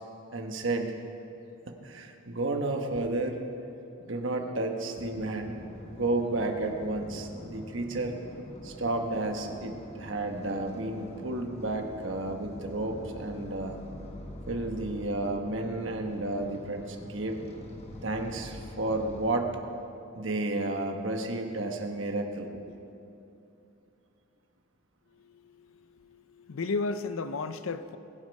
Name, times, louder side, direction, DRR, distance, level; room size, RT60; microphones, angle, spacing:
voice 1, 0.3-0.9 1.7-3.4 4.0-5.6 5.9-8.2 8.6-13.8 14.5-17.4 18.0-19.5 20.1-22.6, right 2 dB, 65° right, 3 dB, 1.3 m, -32 dB
sound 1, 5.0-19.3, left 1 dB, 30° left, 1.1 m, -45 dB
voice 2, 25.2-25.7 26.0-28.0, left 3 dB, 80° left, 11 dB, 0.6 m, -34 dB
21.0 x 8.2 x 5.3 m, 2.8 s
head